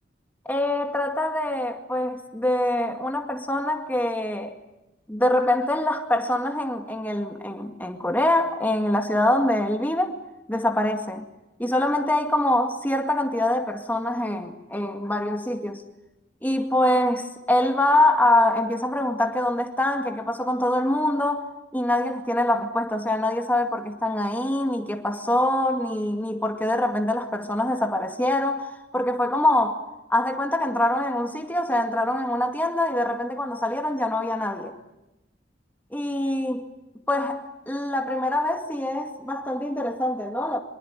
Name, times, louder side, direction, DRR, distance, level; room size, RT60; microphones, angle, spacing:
voice 1, 0.5-4.6 5.1-10.2 10.5-11.3 11.6-15.8 16.4-29.8 30.1-34.7 35.9-36.7 37.1-40.6, left 1 dB, 10° left, 2.2 m, -24 dB
25.0 x 23.0 x 9.7 m
head